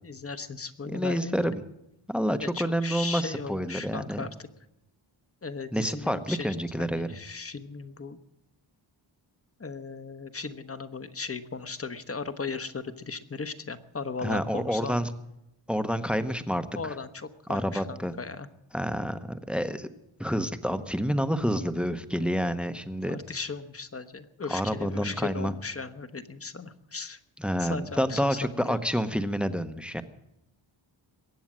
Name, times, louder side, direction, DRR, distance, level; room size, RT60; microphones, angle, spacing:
voice 1, 0.0-1.4 2.4-4.5 5.4-8.2 9.6-15.1 16.7-18.5 23.0-27.2 27.6-28.8, left 4 dB, 30° left, 10 dB, 1.0 m, -37 dB
voice 2, 0.9-1.6 2.1-4.2 5.7-7.1 14.2-15.1 15.7-16.7 17.5-18.1 18.7-19.9 20.2-23.2 24.5-25.5 27.4-30.0, equal, ahead, 11 dB, 0.8 m, -28 dB
22.0 x 8.7 x 7.4 m, 0.84 s
wide cardioid pair, 145°, 48 cm